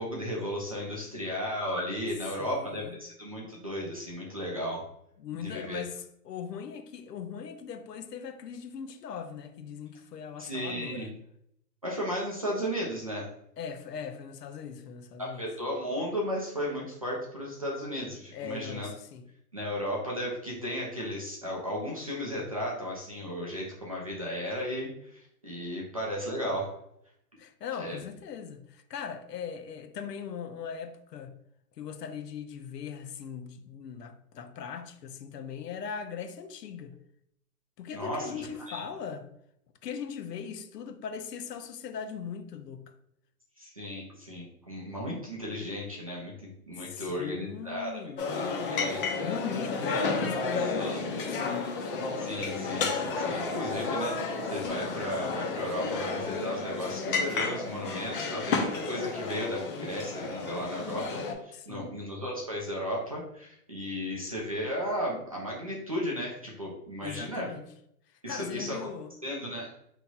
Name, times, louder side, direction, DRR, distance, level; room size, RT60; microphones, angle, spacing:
voice 1, 0.0-4.8 5.3-5.8 10.4-11.1 11.8-13.3 15.2-18.9 19.5-26.7 27.8-28.0 37.9-38.8 43.6-48.0 48.3-49.0 50.6-51.0 52.2-67.5 68.2-68.9 69.2-69.7, equal, 25° right, 0.3 m, -35 dB
voice 2, 2.4-3.0 5.2-11.1 13.6-15.4 18.3-19.2 27.4-31.3 31.8-36.9 37.8-39.3 39.8-42.9 46.8-51.7 61.5-62.0 67.0-67.6 68.3-69.1, left 7 dB, 85° left, 0.7 m, -40 dB
sound 1, 48.2-61.3, left 4 dB, 35° left, 0.6 m, -32 dB
5.3 x 2.9 x 2.3 m
hypercardioid pair, 150°, 47 cm